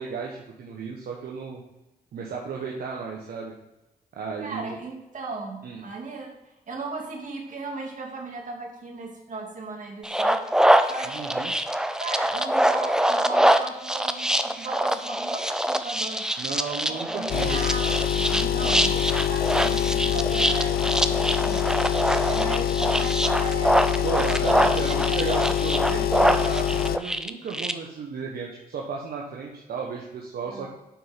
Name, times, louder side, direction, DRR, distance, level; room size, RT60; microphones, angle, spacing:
voice 1, 0.0-1.6 2.1-3.5 4.2-4.8 5.6-5.8 11.1-11.5 16.4-17.6 24.0-30.7, right 5 dB, 65° right, -1 dB, 1.2 m, -34 dB
voice 2, 4.4-10.4 10.9-11.5 12.0-16.3 16.9-21.7 22.2-25.2 30.5-30.7, right 3 dB, 50° right, 0 dB, 2.5 m, -37 dB
sound 1, 10.0-27.7, right 1 dB, 5° right, 0.6 m, -24 dB
sound 2, 17.3-27.0, left 11 dB, 65° left, 0.4 m, -25 dB
7.6 x 5.6 x 5.1 m, 0.97 s
cardioid pair, 65°, 16 cm